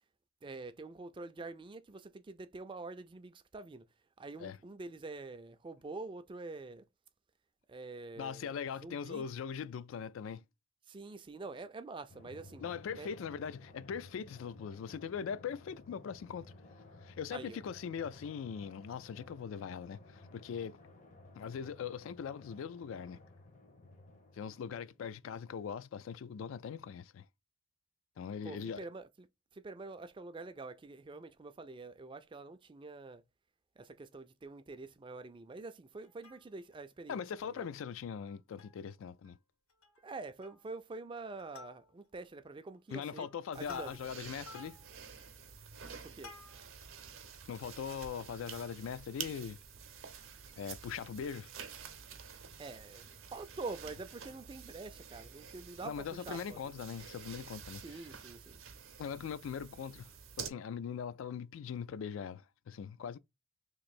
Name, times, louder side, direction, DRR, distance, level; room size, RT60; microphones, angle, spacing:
voice 1, 0.4-3.8 4.2-6.9 7.7-9.2 10.9-13.1 17.3-17.6 28.4-29.3 29.5-33.2 33.8-37.2 37.5-37.7 40.0-43.3 43.5-44.0 45.9-46.3 52.6-56.6 57.8-58.6, right 3 dB, 25° right, 0.4 m, -46 dB
voice 2, 8.2-10.4 12.6-16.5 17.0-20.8 21.3-23.2 24.3-27.3 28.2-28.9 37.1-39.4 42.9-44.8 47.5-49.6 50.6-51.5 55.8-57.8 59.0-60.1 60.4-63.2, left 7 dB, 65° left, 0.3 m, -41 dB
Drum, 12.1-25.2, left 2 dB, 35° left, 0.6 m, -56 dB
Plucked string instrument, 36.0-36.8 37.3-37.4 37.6-37.8 38.3-38.9 39.2-39.4 39.7-40.1 40.4-40.8 41.2-42.2 42.7-46.9 47.4-47.5, left 3 dB, 85° left, 1.4 m, -55 dB
sound 1, 43.5-60.5, right 7 dB, 70° right, 0.7 m, -49 dB
3.1 x 2.6 x 4.1 m
head